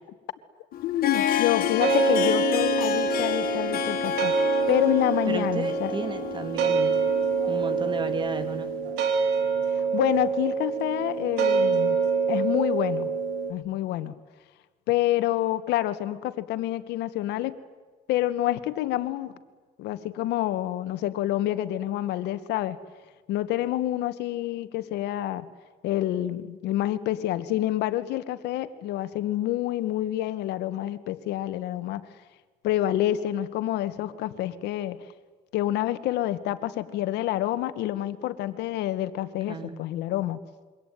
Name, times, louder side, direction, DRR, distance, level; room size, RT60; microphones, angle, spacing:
Harp, 0.7-8.5, left 10 dB, 60° left, 3.8 m, -29 dB
voice 1, 0.8-4.3 4.7-6.0 9.9-12.0 12.3-13.1 13.5-14.1 14.9-17.6 18.1-19.3 19.8-22.8 23.3-25.5 25.8-32.0 32.6-35.0 35.5-40.4, left 14 dB, 85° left, 13 dB, 1.8 m, -27 dB
sound 1, 1.8-13.5, right 5 dB, 90° right, 4.1 m, -26 dB
voice 2, 5.3-7.1 7.5-8.8 39.5-39.8, right 4 dB, 30° right, 9 dB, 3.1 m, -33 dB
26.5 x 24.0 x 9.4 m, 1.4 s
cardioid pair, 110°, 17 cm